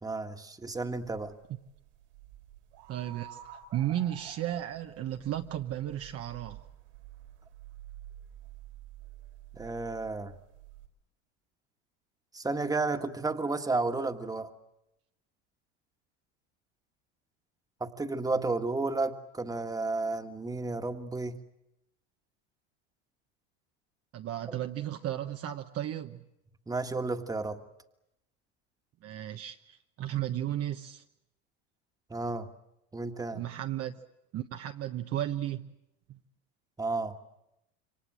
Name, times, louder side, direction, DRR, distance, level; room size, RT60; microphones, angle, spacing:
voice 1, 0.0-1.3 9.6-10.3 12.3-14.5 17.8-21.4 24.5-24.6 26.7-27.6 32.1-32.5 32.9-33.4 36.8-37.1, right 3 dB, 10° right, 1.7 m, -32 dB
sound 1, 0.6-10.9, right 12 dB, 85° right, 5.2 m, -50 dB
voice 2, 2.9-3.4 3.7-6.6 24.1-26.2 29.0-31.0 33.3-33.9 34.3-35.7 36.1-36.2, right 12 dB, 45° right, 1.1 m, -34 dB
27.5 x 24.0 x 7.7 m
supercardioid pair, 105°, 35 cm